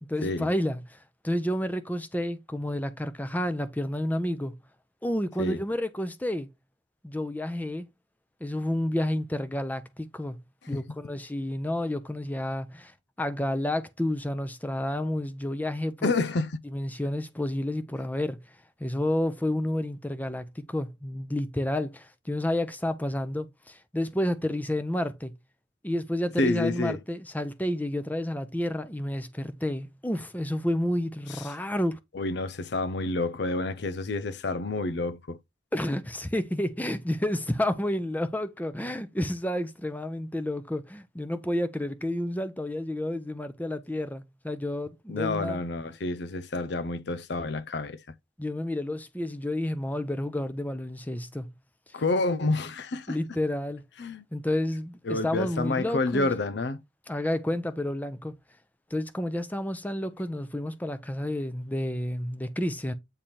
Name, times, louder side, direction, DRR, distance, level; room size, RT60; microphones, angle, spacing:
voice 1, 0.1-4.5 5.0-6.5 7.0-7.9 8.4-10.4 10.7-16.1 16.7-18.4 18.8-25.3 25.8-32.0 35.7-45.6 48.4-51.5 53.1-53.8 54.3-56.3 57.1-58.3 58.9-62.9, left 1 dB, 10° left, 0.7 m, -30 dB
voice 2, 16.0-16.5 26.4-27.0 31.3-31.4 32.1-35.4 45.1-48.0 51.9-53.2 54.0-54.2 55.1-56.8, left 2 dB, 60° left, 0.6 m, -29 dB
8.8 x 3.3 x 4.3 m
head